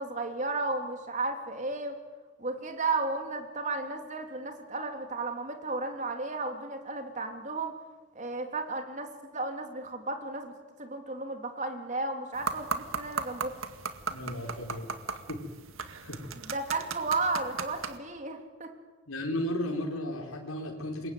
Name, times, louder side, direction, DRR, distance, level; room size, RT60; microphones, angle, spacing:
voice 1, 0.0-2.0 2.4-7.7 8.1-10.5 10.8-13.5 16.5-18.7, right 3 dB, 35° right, 5 dB, 3.3 m, -33 dB
sound 1, 12.3-18.0, right 5 dB, 75° right, 2.0 m, -37 dB
voice 2, 14.1-14.9 15.3-15.4 16.0-16.2 19.1-21.1, left 1 dB, 85° left, 0 dB, 4.4 m, -34 dB
28.0 x 22.5 x 9.5 m, 1.3 s
head